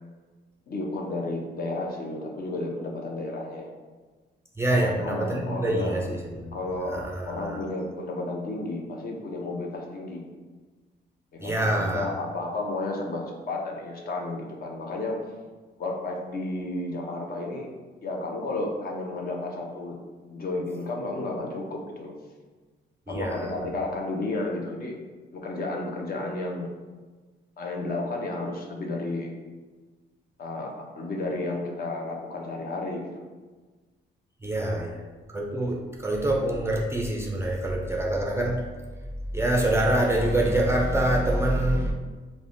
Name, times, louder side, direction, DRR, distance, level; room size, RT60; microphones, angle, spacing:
voice 1, 0.7-3.7 4.7-6.1 6.5-10.2 11.3-15.2 15.8-17.7 18.0-20.0 20.3-22.1 23.1-24.9 25.3-26.7 27.6-29.3 30.4-33.2 34.6-34.8, left 2 dB, 50° left, 0 dB, 0.6 m, -32 dB
voice 2, 4.6-6.6 6.9-7.6 11.4-12.1 23.1-23.7 34.4-35.0 35.3-38.6 39.3-41.9, right 1 dB, 15° right, -1 dB, 0.4 m, -25 dB
3.3 x 2.1 x 2.5 m, 1.3 s
cardioid pair, 90°, 20 cm